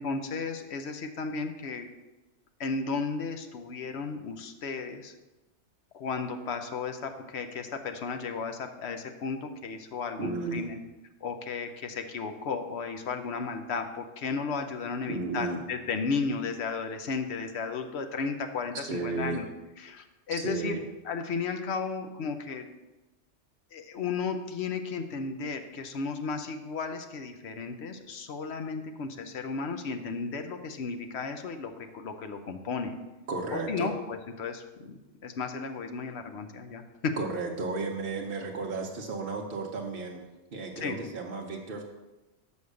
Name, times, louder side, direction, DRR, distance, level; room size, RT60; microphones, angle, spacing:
voice 1, 0.0-1.9 2.6-5.1 5.9-10.8 11.2-19.5 19.8-22.7 23.7-33.0 33.5-37.2 40.8-41.0, left 5 dB, 70° left, 6 dB, 1.0 m, -34 dB
voice 2, 10.2-10.7 15.1-15.6 18.7-19.4 20.3-20.8 33.3-33.9 37.2-40.3 40.5-41.8, right 3 dB, 55° right, -1 dB, 0.9 m, -33 dB
6.3 x 5.3 x 6.4 m, 1.1 s
omnidirectional pair, 1.2 m